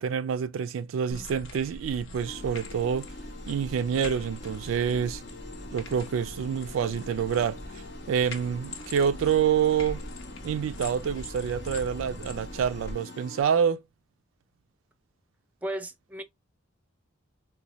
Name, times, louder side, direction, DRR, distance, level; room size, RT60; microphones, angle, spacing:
voice 1, 0.0-3.1 3.5-5.2 5.7-10.0 10.4-13.8, right 7 dB, 75° right, 0.3 m, -27 dB
sound 1, 1.1-12.9, left 1 dB, 85° left, 0.9 m, -42 dB
sound 2, 2.2-13.4, left 2 dB, 60° left, 0.7 m, -45 dB
voice 2, 15.6-16.2, right 1 dB, 10° right, 0.5 m, -34 dB
3.9 x 2.2 x 2.9 m
head